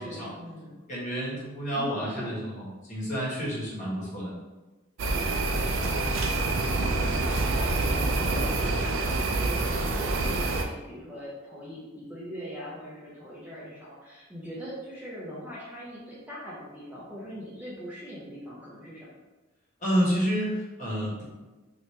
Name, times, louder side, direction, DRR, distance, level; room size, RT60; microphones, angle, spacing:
voice 1, 0.0-0.8 1.7-2.4 5.7-19.2, equal, 10° right, -7 dB, 0.6 m, -41 dB
voice 2, 0.9-4.3 19.8-21.2, equal, 40° left, -7 dB, 1.4 m, -29 dB
sound 1, 5.0-10.6, right 2 dB, 80° right, 0.4 m, -26 dB
2.9 x 2.9 x 3.2 m, 1.2 s
head